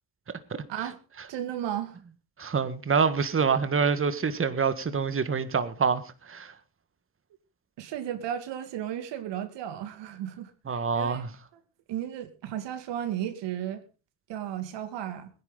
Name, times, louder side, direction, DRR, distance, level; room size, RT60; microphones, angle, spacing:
voice 1, 1.3-2.0 7.8-11.2 11.9-13.8 14.3-15.3, right 10 dB, 85° right, 2.5 m, -34 dB
voice 2, 2.4-6.5 10.7-11.3, right 5 dB, 30° right, 1.7 m, -26 dB
21.5 x 10.5 x 4.0 m
cardioid pair, 95°, 42 cm